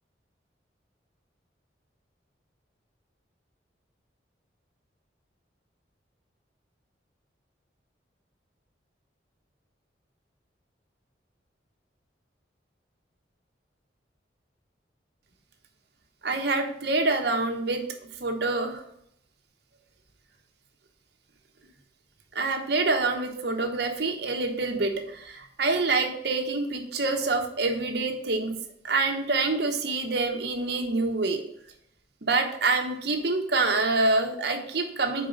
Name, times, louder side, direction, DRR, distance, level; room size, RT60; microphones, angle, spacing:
voice 1, 16.2-17.8 18.2-18.8 22.3-28.5 28.8-31.4 32.2-35.3, right 3 dB, 60° right, 4 dB, 0.9 m, -26 dB
4.7 x 4.6 x 5.2 m, 0.71 s
head